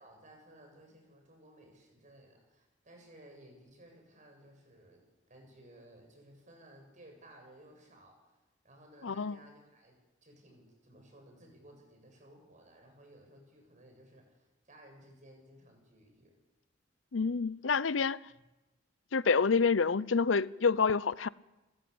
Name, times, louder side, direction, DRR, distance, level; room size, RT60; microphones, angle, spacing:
voice 1, 0.0-8.4 8.6-16.3 18.3-18.4, right 1 dB, 40° right, 7.6 m, -58 dB
voice 2, 9.0-9.4 17.1-18.2 19.1-21.3, left 5 dB, 90° left, 0.7 m, -28 dB
28.5 x 15.5 x 8.7 m
head